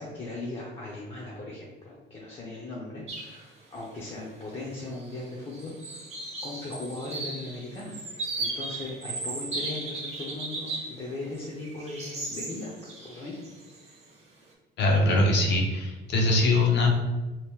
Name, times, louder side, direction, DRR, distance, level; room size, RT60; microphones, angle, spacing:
voice 1, 0.0-6.1 6.4-8.0 8.4-12.7 13.0-13.4, left 2 dB, 30° left, -5 dB, 0.6 m, -38 dB
sound 1, 3.1-3.4 3.8-3.9 4.8-5.2 5.5-11.0 11.3-14.0, right 2 dB, 35° right, 0.8 m, -36 dB
voice 2, 14.8-16.9, left 2 dB, 65° left, 0 dB, 0.8 m, -22 dB
2.8 x 2.6 x 3.5 m, 1.2 s
cardioid pair, 140°, 20 cm